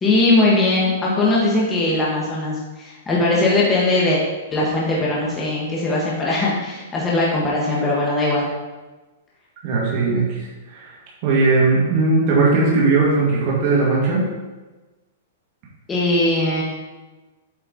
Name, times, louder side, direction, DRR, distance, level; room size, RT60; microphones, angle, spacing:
voice 1, 0.0-4.2 4.5-8.5 15.9-16.6, left 2 dB, 15° left, -5 dB, 1.3 m, -20 dB
voice 2, 9.6-11.0 11.2-14.3, right 3 dB, 40° right, -4 dB, 1.8 m, -18 dB
8.2 x 4.5 x 3.9 m, 1.2 s
hypercardioid pair, 155°, 0 cm